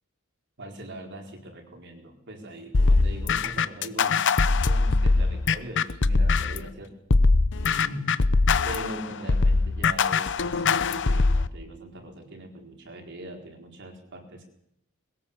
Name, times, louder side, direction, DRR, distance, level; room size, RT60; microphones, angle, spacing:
voice 1, 0.6-6.9 7.6-8.2 8.6-14.5, right 1 dB, 55° right, 2 dB, 4.4 m, -41 dB
sound 1, 2.7-6.7 7.1-11.5, left 3 dB, 60° left, 0.8 m, -22 dB
21.5 x 18.0 x 7.2 m, 0.79 s
head